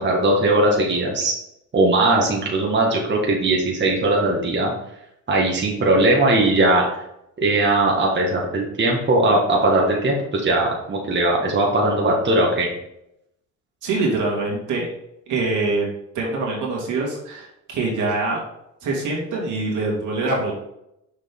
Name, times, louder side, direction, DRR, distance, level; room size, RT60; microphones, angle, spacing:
voice 1, 0.0-1.3 1.7-4.7 5.3-6.8 7.4-12.7, right 2 dB, 35° right, -1 dB, 1.6 m, -19 dB
voice 2, 13.8-14.9 15.3-15.9 16.1-18.4 18.8-20.5, right 3 dB, 80° right, -2 dB, 2.4 m, -24 dB
6.4 x 5.2 x 3.7 m, 0.81 s
cardioid pair, 90°, 30 cm